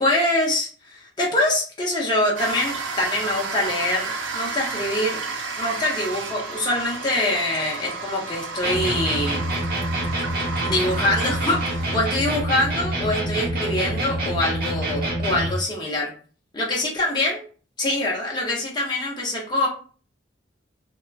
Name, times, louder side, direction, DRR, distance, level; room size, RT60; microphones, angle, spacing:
voice 1, 0.0-5.2 5.6-9.4 10.6-16.1 16.5-17.4 17.8-19.7, left 1 dB, 25° left, -4 dB, 0.6 m, -24 dB
sound 1, 2.4-12.0, right 4 dB, 75° right, 0.4 m, -32 dB
sound 2, 8.6-15.6, right 1 dB, 50° right, 0.8 m, -26 dB
2.8 x 2.1 x 2.3 m, 0.40 s
head